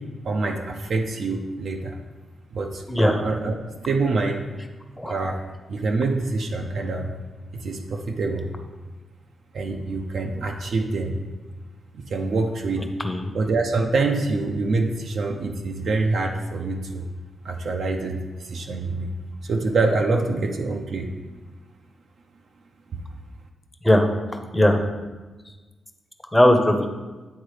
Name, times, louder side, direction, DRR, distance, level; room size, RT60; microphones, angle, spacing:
voice 1, 0.2-2.0 2.5-3.5 3.8-4.4 5.1-5.4 5.7-7.1 7.5-8.5 9.5-11.2 11.9-12.8 13.3-17.1 17.4-19.1 19.4-21.1, right 3 dB, 65° right, 2 dB, 0.6 m, -25 dB
voice 2, 2.9-3.2 5.0-5.1 13.0-13.3 23.8-24.9 26.3-26.9, left 1 dB, 5° left, 5 dB, 0.7 m, -19 dB
9.7 x 3.9 x 5.0 m, 1.3 s
wide cardioid pair, 125°, 0 cm